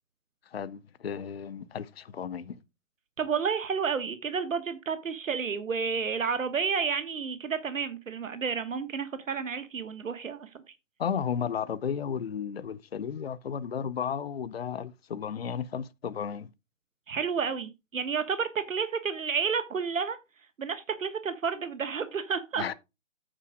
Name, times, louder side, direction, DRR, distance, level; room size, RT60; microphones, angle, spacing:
voice 1, 0.5-2.6 11.0-16.5 22.6-22.7, left 7 dB, 50° left, 0.5 m, -33 dB
voice 2, 3.2-10.5 17.1-20.2 20.6-22.7, right 6 dB, 80° right, 1.2 m, -31 dB
8.8 x 4.9 x 4.8 m
hypercardioid pair, 175°, 39 cm